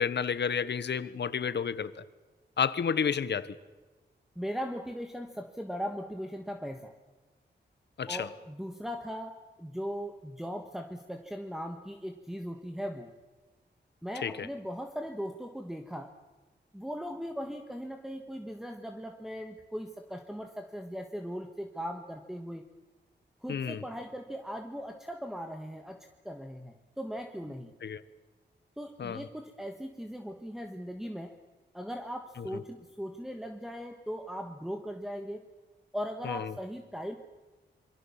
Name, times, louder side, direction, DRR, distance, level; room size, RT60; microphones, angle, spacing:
voice 1, 0.0-1.9 2.6-3.6 8.0-8.3 14.2-14.5 23.5-23.8 27.8-28.0 29.0-29.3 32.4-32.5 36.2-36.5, left 7 dB, 70° left, 1.1 m, -31 dB
voice 2, 4.3-6.9 8.1-13.1 14.0-16.1 16.7-22.6 23.4-27.7 28.8-31.4 31.7-35.5 35.9-37.2, equal, ahead, 1.6 m, -39 dB
26.5 x 23.0 x 7.3 m
wide cardioid pair, 105°, 19 cm